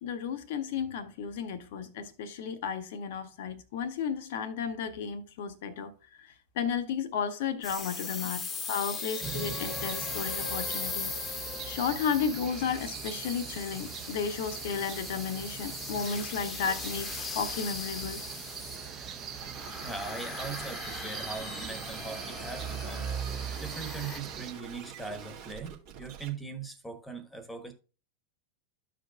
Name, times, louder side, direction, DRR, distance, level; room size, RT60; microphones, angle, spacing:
voice 1, 0.0-5.9 6.6-8.4 8.7-11.1 11.7-18.2, left 6 dB, 55° left, 0.8 m, -33 dB
sound 1, 7.6-24.2, left 3 dB, 20° left, 1.0 m, -39 dB
sound 2, 9.2-24.5, right 8 dB, 30° right, 1.0 m, -42 dB
sound 3, 16.6-26.3, right 8 dB, 50° right, 2.0 m, -47 dB
voice 2, 19.8-27.7, right 4 dB, 5° left, 1.3 m, -40 dB
13.5 x 5.0 x 2.3 m
figure-of-eight pair, 90°, 0 cm